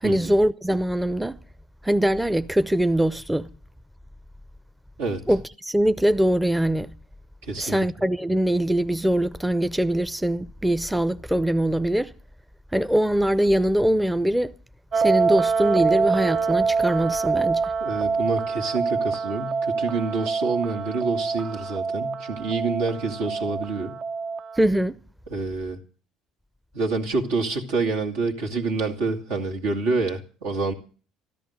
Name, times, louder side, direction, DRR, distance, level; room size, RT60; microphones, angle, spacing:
voice 1, 0.0-1.4 1.8-3.5 5.3-6.9 7.6-12.1 12.7-14.5 14.9-17.7 24.5-25.0, right 1 dB, 5° right, 0.6 m, -22 dB
voice 2, 7.4-7.8 17.8-24.0 25.3-25.8 26.7-30.7, right 3 dB, 80° right, 2.3 m, -27 dB
sound 1, 14.9-24.6, right 5 dB, 45° right, 0.6 m, -25 dB
14.0 x 13.0 x 6.5 m
hypercardioid pair, 65°, 0 cm